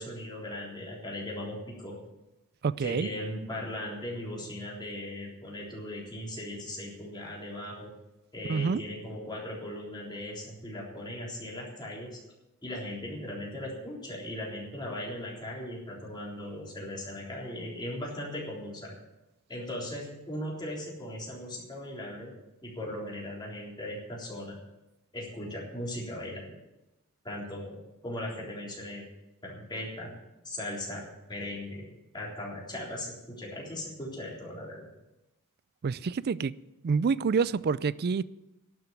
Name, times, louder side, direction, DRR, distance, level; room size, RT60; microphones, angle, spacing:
voice 1, 0.0-2.0 2.8-7.9 8.3-12.2 12.6-18.9 19.5-22.4 22.6-24.6 25.1-26.5 27.2-27.8 28.0-29.0 29.4-30.1 30.4-31.9 32.1-34.8, left 1 dB, 20° left, 3.7 m, -38 dB
voice 2, 2.6-3.1 8.5-8.8 35.8-36.5 36.8-38.2, right 5 dB, 45° right, 0.4 m, -27 dB
12.0 x 7.2 x 9.3 m
head